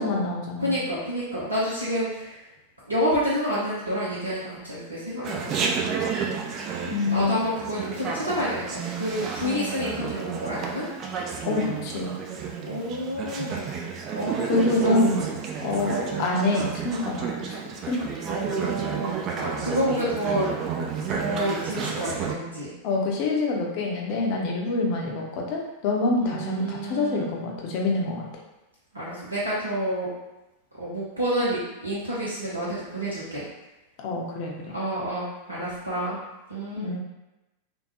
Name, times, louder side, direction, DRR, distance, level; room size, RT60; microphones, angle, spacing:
voice 1, 0.0-0.8 6.8-7.4 11.4-12.1 14.4-15.2 15.6-17.6 17.9-18.0 22.8-28.2 34.0-34.5 36.8-37.0, left 3 dB, 45° left, -1 dB, 0.6 m, -26 dB
voice 2, 0.6-2.4 2.9-6.0 6.3-10.9 12.6-13.7 14.1-15.0 15.9-16.5 18.3-20.5 21.1-22.7 26.2-27.3 28.9-30.1 30.8-33.5 34.7-36.2 36.5-36.9, equal, 80° right, -8 dB, 0.7 m, -29 dB
Chatter, 5.2-22.3, right 6 dB, 35° right, 0.4 m, -31 dB
3.4 x 2.2 x 2.9 m, 1.0 s
figure-of-eight pair, 90°, 0 cm